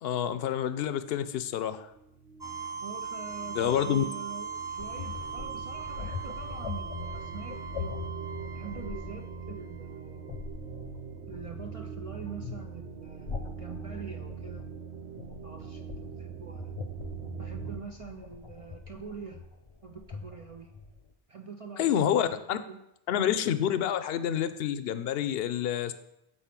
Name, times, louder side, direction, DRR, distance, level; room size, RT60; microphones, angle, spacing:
voice 1, 0.0-1.9 3.6-4.0 21.8-22.6 23.1-25.9, left 10 dB, 70° left, 12 dB, 0.8 m, -28 dB
sound 1, 1.9-17.8, right 7 dB, 85° right, 0.9 m, -43 dB
sound 2, 2.4-10.2, right 6 dB, 5° right, 0.6 m, -40 dB
voice 2, 2.8-8.0 8.5-10.4 11.3-14.7 15.4-16.7 17.4-19.5 19.8-20.7 21.3-22.3 22.5-22.8, right 5 dB, 45° right, 4 dB, 0.5 m, -44 dB
sound 3, 4.8-21.1, left 5 dB, 35° left, 0.6 m, -43 dB
7.8 x 4.2 x 5.7 m, 0.83 s
omnidirectional pair, 1.1 m